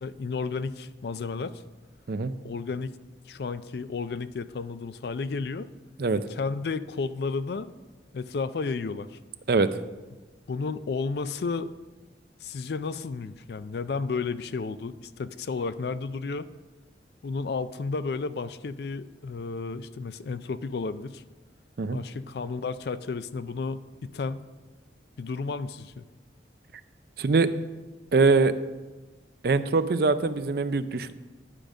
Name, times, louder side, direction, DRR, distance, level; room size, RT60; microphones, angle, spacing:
voice 1, 0.0-1.6 2.4-2.9 3.3-5.7 6.1-7.7 8.1-9.2 10.5-11.7 12.4-16.5 17.2-21.2 21.9-24.5 25.2-26.0, left 4 dB, 60° left, 14 dB, 0.4 m, -32 dB
voice 2, 27.2-27.5 28.1-28.5 29.4-31.1, right 4 dB, 55° right, 12 dB, 0.4 m, -23 dB
10.0 x 5.1 x 6.1 m, 1.2 s
head